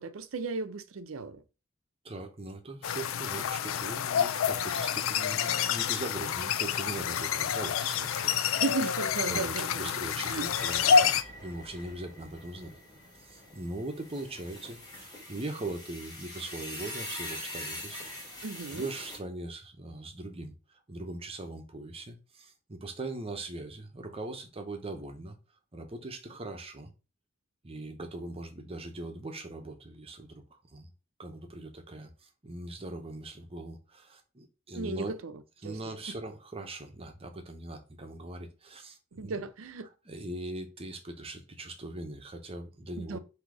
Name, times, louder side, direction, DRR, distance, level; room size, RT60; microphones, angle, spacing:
voice 1, 0.0-1.4 8.6-9.9 10.2-10.5 18.4-18.9 34.8-35.3 35.6-35.7 39.1-39.9 43.0-43.2, right 4 dB, 80° right, 0.6 m, -35 dB
voice 2, 2.0-8.6 9.2-12.7 13.2-18.4 18.7-25.4 25.7-26.9 27.6-30.9 31.2-35.2 35.6-39.4 40.1-43.2, right 2 dB, 30° right, 0.8 m, -41 dB
sound 1, 2.8-11.2, left 7 dB, 80° left, 0.4 m, -28 dB
sound 2, 10.5-19.2, left 1 dB, 20° left, 2.3 m, -43 dB
3.9 x 2.8 x 4.7 m
head